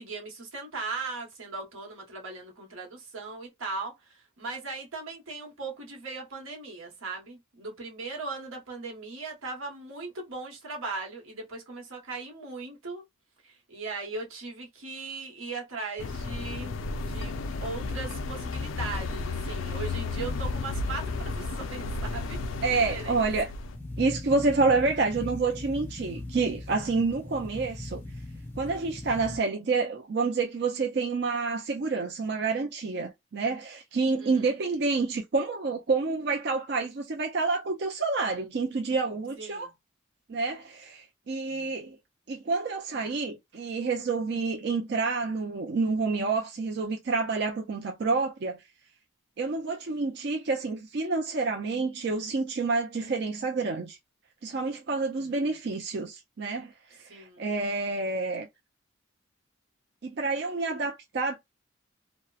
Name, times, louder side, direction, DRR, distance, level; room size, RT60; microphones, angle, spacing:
voice 1, 0.0-13.0 13.4-22.4 22.7-23.2 26.1-26.3 34.2-34.5 39.4-39.7 41.4-41.7 55.1-55.6 57.1-57.4, right 3 dB, 85° right, 1.1 m, -39 dB
sound 1, 16.0-23.8, left 3 dB, 80° left, 0.4 m, -33 dB
voice 2, 22.6-23.5 24.0-28.0 28.6-39.7 40.3-42.0 42.3-48.6 49.4-54.0 54.4-58.5 60.0-61.3, right 3 dB, 55° right, 0.4 m, -28 dB
sound 2, 23.7-29.4, left 2 dB, 10° left, 0.4 m, -39 dB
2.8 x 2.0 x 2.3 m
head